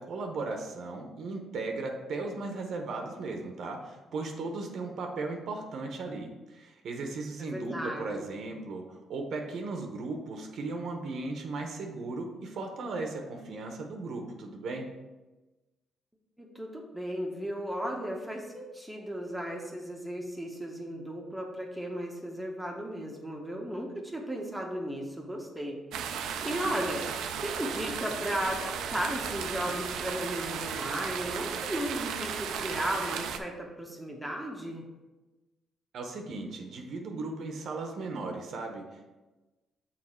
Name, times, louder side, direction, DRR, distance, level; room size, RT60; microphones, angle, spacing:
voice 1, 0.0-8.8 9.1-14.9 35.9-39.1, right 3 dB, 65° right, 3 dB, 0.9 m, -36 dB
voice 2, 7.5-8.4 16.4-25.8 26.4-34.8, equal, 5° right, 0 dB, 1.0 m, -35 dB
sound 1, 25.9-33.4, right 7 dB, 85° right, 0.5 m, -35 dB
6.6 x 3.9 x 4.4 m, 1.1 s
cardioid pair, 90°, 0 cm